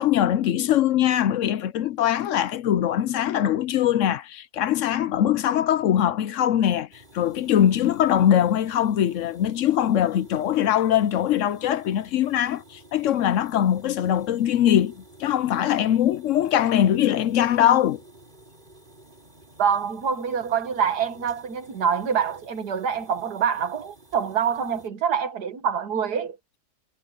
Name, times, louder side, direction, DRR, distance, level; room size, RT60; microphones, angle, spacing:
voice 1, 0.0-6.9 7.1-18.0, left 10 dB, 65° left, 0.8 m, -22 dB
sound 1, 6.9-24.9, right 1 dB, 30° right, 6.8 m, -52 dB
voice 2, 19.6-26.4, right 7 dB, 85° right, 2.0 m, -25 dB
omnidirectional pair, 1.7 m